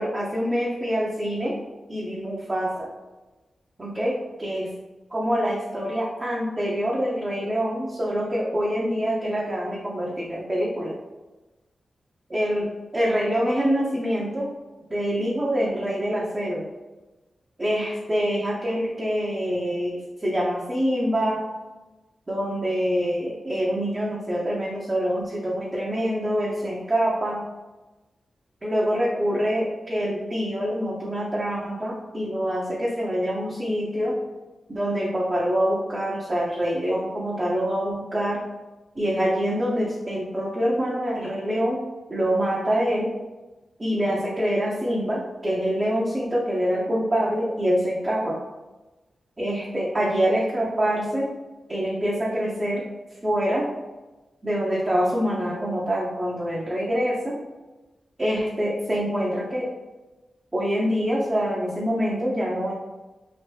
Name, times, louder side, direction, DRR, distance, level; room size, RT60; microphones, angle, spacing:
voice 1, 0.0-1.6 1.9-2.9 3.8-4.7 5.1-10.9 12.3-14.5 14.9-16.7 17.6-21.4 22.3-27.4 28.6-34.2 34.7-38.4 39.0-41.8 42.1-43.1 43.8-48.4 49.4-51.3 51.7-52.9 53.2-53.7 54.4-57.4 58.2-59.7 60.5-62.7, equal, 35° right, -5 dB, 0.7 m, -25 dB
3.0 x 2.5 x 3.2 m, 1.1 s
cardioid pair, 45°, 0 cm